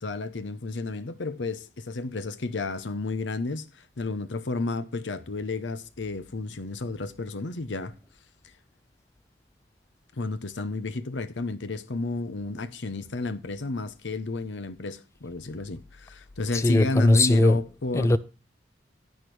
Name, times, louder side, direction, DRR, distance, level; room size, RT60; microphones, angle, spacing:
voice 1, 0.0-3.7 4.0-7.9 10.2-18.2, left 3 dB, 85° left, 0.8 m, -32 dB
voice 2, 16.5-17.6 17.9-18.2, left 2 dB, 15° left, 0.3 m, -20 dB
10.5 x 8.8 x 3.2 m
head